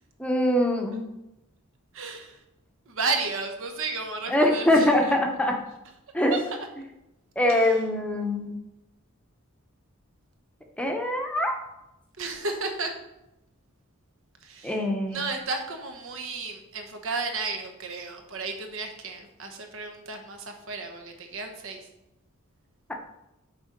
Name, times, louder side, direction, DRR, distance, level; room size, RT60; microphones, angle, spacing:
voice 1, 0.2-1.1 4.3-5.6 6.1-6.4 7.4-8.6 10.8-11.6 14.6-15.2, left 1 dB, 5° left, 2 dB, 0.8 m, -23 dB
voice 2, 1.9-2.4 2.9-5.1 6.3-6.6 7.5-7.8 12.2-12.9 14.4-14.8 15.1-21.8, right 3 dB, 65° right, 5 dB, 1.1 m, -33 dB
6.8 x 4.1 x 5.2 m, 0.90 s
head